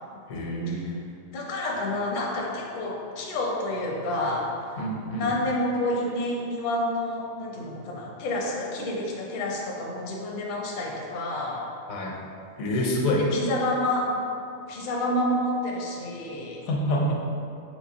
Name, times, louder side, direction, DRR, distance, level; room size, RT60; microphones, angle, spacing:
voice 1, 0.3-0.8 4.8-5.3 11.9-12.1 12.6-13.3 16.7-17.1, equal, 80° left, -1 dB, 1.0 m, -26 dB
voice 2, 1.3-4.5 5.1-11.6 13.0-14.3 14.7-16.6, left 1 dB, 55° left, -2 dB, 0.5 m, -29 dB
3.9 x 2.8 x 2.8 m, 2.5 s
omnidirectional pair, 1.4 m